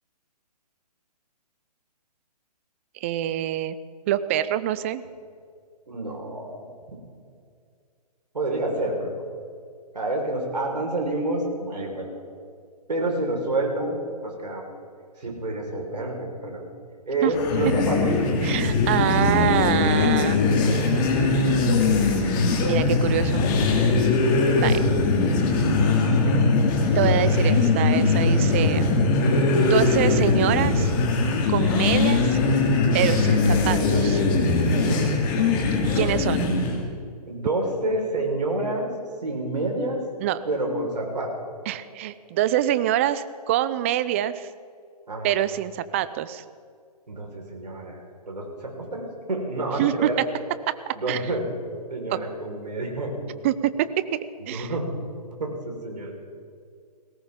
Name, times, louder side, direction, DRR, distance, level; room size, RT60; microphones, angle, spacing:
voice 1, 3.0-3.8 4.1-5.0 17.2-17.3 18.4-20.4 22.6-23.4 24.5-24.8 26.9-28.9 29.6-30.9 31.5-32.4 32.9-34.2 35.9-36.5 40.2-40.4 41.7-44.5 45.2-46.4 49.8-50.1 50.7-51.2 52.1-52.2 53.4-54.1 54.5-54.7, right 12 dB, 20° right, 14 dB, 0.4 m, -25 dB
voice 2, 5.9-6.6 8.3-9.1 9.9-12.2 12.9-14.6 15.2-16.6 17.1-18.1 37.3-38.9 39.2-40.0 40.5-41.3 45.1-45.4 47.1-48.0 48.3-50.2 50.9-51.5 51.9-53.1 54.5-54.8 55.4-56.1, right 2 dB, 80° right, 0 dB, 4.6 m, -28 dB
sound 1, 17.3-36.8, left 3 dB, 30° left, 2.4 m, -21 dB
20.0 x 17.5 x 3.7 m, 2.2 s
hypercardioid pair, 140°, 21 cm